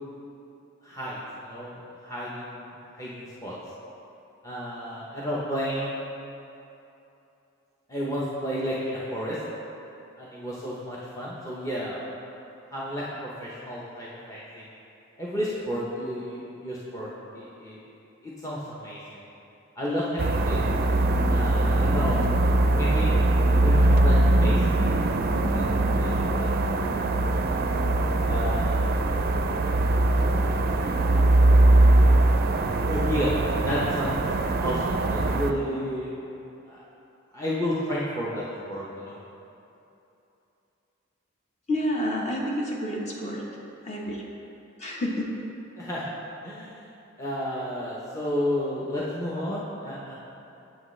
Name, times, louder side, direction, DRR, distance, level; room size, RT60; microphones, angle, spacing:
voice 1, 0.8-2.7 2.9-3.5 4.4-6.0 7.9-9.4 10.2-12.0 12.7-13.0 13.4-14.6 15.2-17.1 17.3-17.8 18.2-19.2 19.8-20.6 21.3-22.2 22.8-23.3 23.6-25.6 25.9-26.5 28.2-28.8 32.9-33.3 33.7-34.3 34.6-36.1 36.6-36.8 37.3-39.2 45.8-46.0 46.4-46.9 47.2-50.1, equal, 15° left, -7 dB, 0.8 m, -32 dB
sound 1, 20.2-35.5, right 2 dB, 50° right, 0.4 m, -21 dB
voice 2, 41.7-43.4 43.8-44.2 44.8-45.3, equal, 35° left, -3 dB, 1.1 m, -29 dB
8.7 x 7.5 x 3.2 m, 2.9 s
head